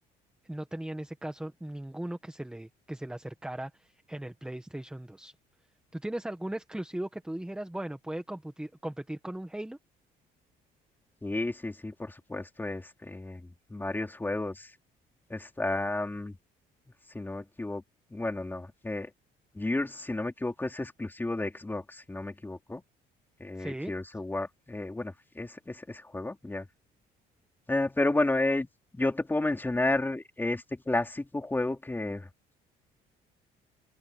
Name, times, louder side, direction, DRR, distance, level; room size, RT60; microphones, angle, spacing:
voice 1, 0.4-5.3 5.9-9.8 23.6-23.9, right 1 dB, 5° right, 1.5 m, -38 dB
voice 2, 11.2-14.7 15.3-16.4 17.1-17.8 18.1-19.1 19.5-22.8 23.4-26.7 27.7-28.7 28.9-32.3, left 2 dB, 10° left, 3.8 m, -32 dB
open air
cardioid pair, 110°, 17 cm